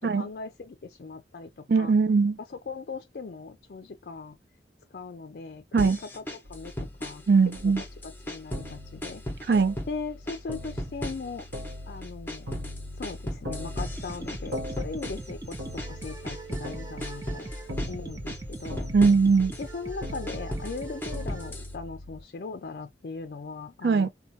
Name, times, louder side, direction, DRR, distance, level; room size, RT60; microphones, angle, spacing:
voice 1, 0.0-1.9 2.5-4.4 4.9-6.2 6.5-7.2 8.0-9.2 9.9-11.5 11.9-12.5 13.0-18.9 19.6-24.1, left 4 dB, 55° left, 0.4 m, -39 dB
voice 2, 1.7-2.4 5.7-6.0 7.3-7.8 9.5-9.8 18.9-19.5 23.8-24.1, right 4 dB, 65° right, 0.4 m, -21 dB
sound 1, 5.8-7.3 7.5-8.8 9.0-10.0 10.3-11.7 12.0-16.7 17.0-18.0 18.3-19.6 20.0-21.7, left 1 dB, 10° left, 0.8 m, -37 dB
sound 2, 6.4-22.2, left 1 dB, 90° right, 0.8 m, -41 dB
sound 3, 13.9-21.5, right 1 dB, 20° right, 0.6 m, -40 dB
4.3 x 2.2 x 2.7 m
head